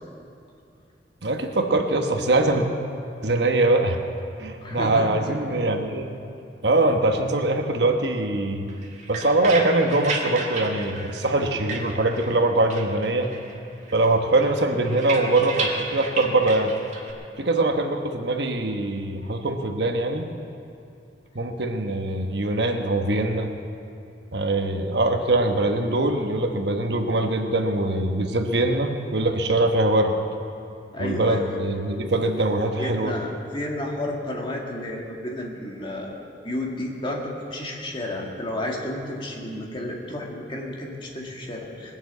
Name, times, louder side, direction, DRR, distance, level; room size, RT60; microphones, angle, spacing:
voice 1, 1.2-2.7 3.2-4.0 4.4-6.1 6.6-8.7 9.1-13.3 13.9-16.8 17.4-20.3 21.3-23.5 24.3-30.2 31.0-33.1, right 2 dB, 70° right, 4 dB, 1.1 m, -22 dB
voice 2, 4.6-5.4 30.9-31.6 32.8-36.2 36.4-42.0, left 1 dB, 30° left, -1 dB, 2.0 m, -31 dB
sound 1, 8.7-12.4 12.7-13.6 13.9-17.1, right 3 dB, 40° right, 1.8 m, -33 dB
20.5 x 7.3 x 8.1 m, 2.6 s
head